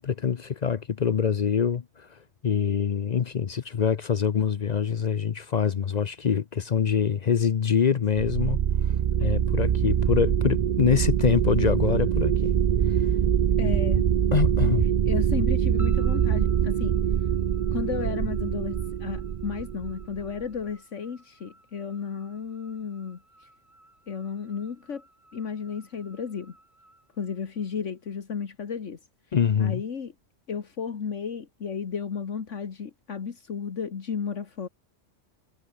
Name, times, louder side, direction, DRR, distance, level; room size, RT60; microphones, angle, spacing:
voice 1, 0.0-1.8 2.4-8.6 9.2-12.5 14.3-14.9 29.3-29.8, left 7 dB, 45° left, 0.6 m, -24 dB
sound 1, 8.2-20.4, right 9 dB, 55° right, 0.5 m, -24 dB
voice 2, 13.6-14.1 15.1-17.0 17.7-23.5 24.1-25.0 25.3-26.6 27.2-29.0 29.6-30.1 30.5-34.7, left 6 dB, 70° left, 1.8 m, -33 dB
sound 2, 15.8-28.1, right 1 dB, 40° right, 6.0 m, -56 dB
omnidirectional pair, 1.3 m